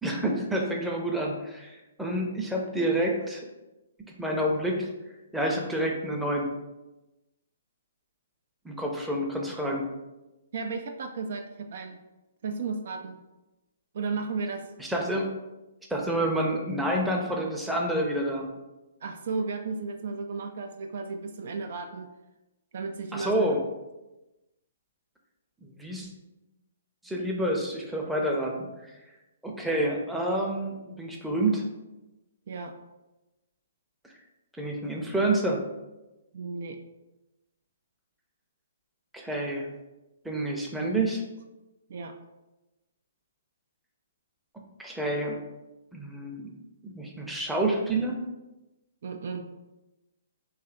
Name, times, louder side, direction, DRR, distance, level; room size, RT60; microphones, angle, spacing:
voice 1, 0.0-3.4 4.2-4.9 5.3-6.5 8.6-9.8 14.8-15.3 15.9-18.5 23.1-23.6 25.8-26.1 27.0-28.9 29.4-31.6 34.6-35.6 39.1-39.7 40.2-41.2 44.8-45.4 45.9-46.5 46.8-48.2, right 1 dB, 5° right, -1 dB, 0.6 m, -28 dB
voice 2, 10.5-12.0 12.4-13.2 13.9-14.6 19.0-22.1 22.7-23.5 32.5-32.7 36.3-36.8 41.9-42.1 49.0-49.5, right 4 dB, 55° right, 5 dB, 0.3 m, -34 dB
3.2 x 2.6 x 3.7 m, 1.0 s
figure-of-eight pair, 125°, 0 cm